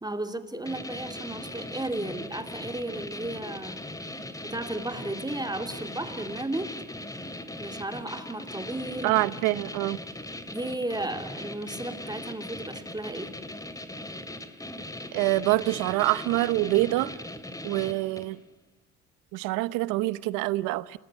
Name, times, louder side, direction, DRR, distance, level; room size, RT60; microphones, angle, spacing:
voice 1, 0.0-3.8 4.4-6.7 7.6-9.2 10.5-13.3, right 1 dB, 15° right, 2.8 m, -34 dB
sound 1, 0.7-18.4, left 1 dB, 10° left, 2.4 m, -39 dB
voice 2, 9.0-10.0 15.1-17.2 17.6-18.4 19.3-21.0, right 18 dB, 80° right, 0.9 m, -25 dB
26.5 x 19.5 x 9.5 m
supercardioid pair, 65°, 31 cm